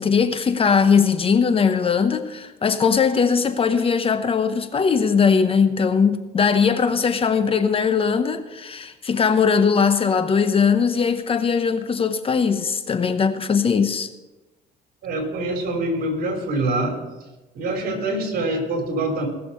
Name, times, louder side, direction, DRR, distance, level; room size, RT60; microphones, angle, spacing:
voice 1, 0.0-14.1, left 6 dB, 35° left, 0.9 m, -20 dB
voice 2, 15.0-17.0 17.5-19.3, right 2 dB, 60° right, 3.4 m, -25 dB
19.5 x 6.8 x 5.5 m
cardioid pair, 110°, 17 cm